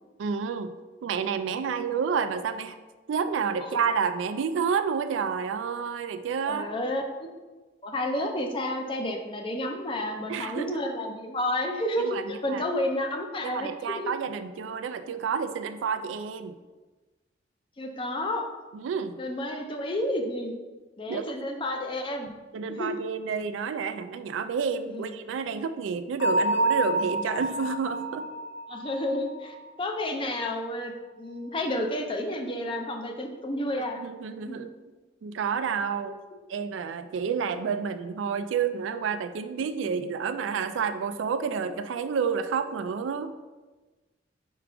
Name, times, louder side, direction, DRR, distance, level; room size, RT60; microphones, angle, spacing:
voice 1, 0.2-0.7 1.0-2.8 3.1-6.7 10.3-10.8 12.0-12.6 13.4-16.6 18.7-19.2 21.1-21.4 22.5-28.3 34.0-34.7 35.2-36.1 36.5-43.3, right 6 dB, 90° right, 10 dB, 0.3 m, -30 dB
voice 2, 6.5-7.3 7.8-14.1 17.8-18.5 19.2-20.6 21.0-22.4 22.7-22.9 24.9-25.1 28.7-34.0 34.5-34.6 36.1-36.2, left 1 dB, 30° left, 3 dB, 0.5 m, -31 dB
Bell, 26.2-29.9, right 1 dB, 90° left, 1.4 m, -28 dB
4.6 x 2.4 x 4.8 m, 1.2 s
head